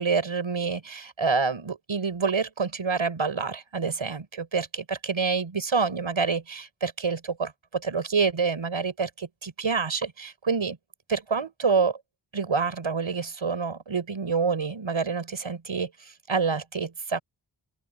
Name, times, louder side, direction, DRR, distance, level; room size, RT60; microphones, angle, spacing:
voice 1, 0.0-10.8 11.1-12.0 12.3-17.2, right 5 dB, 85° right, 7.8 m, -27 dB
open air
wide cardioid pair, 75°, 46 cm